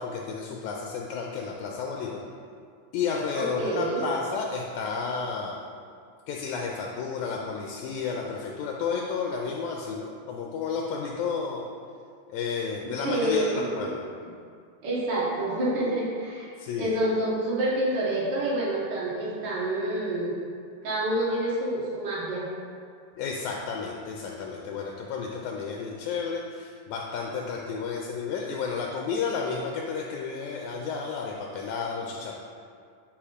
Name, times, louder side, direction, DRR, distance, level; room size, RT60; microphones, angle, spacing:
voice 1, 0.0-2.2 2.9-5.6 6.3-11.7 12.3-14.0 16.6-17.0 23.2-32.3, left 5 dB, 85° left, 0 dB, 1.7 m, -32 dB
voice 2, 3.3-4.0 13.0-13.9 14.8-16.5 16.8-20.3 20.8-22.5, right 1 dB, 60° right, -6 dB, 1.1 m, -27 dB
8.1 x 2.9 x 4.9 m, 2.2 s
omnidirectional pair, 3.9 m